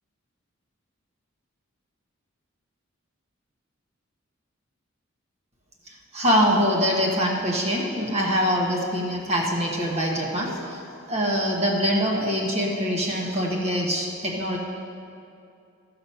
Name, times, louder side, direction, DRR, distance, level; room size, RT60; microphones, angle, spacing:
voice 1, 5.9-10.8 11.1-14.6, equal, 30° right, -1 dB, 1.1 m, -24 dB
14.5 x 6.0 x 5.5 m, 2.5 s
head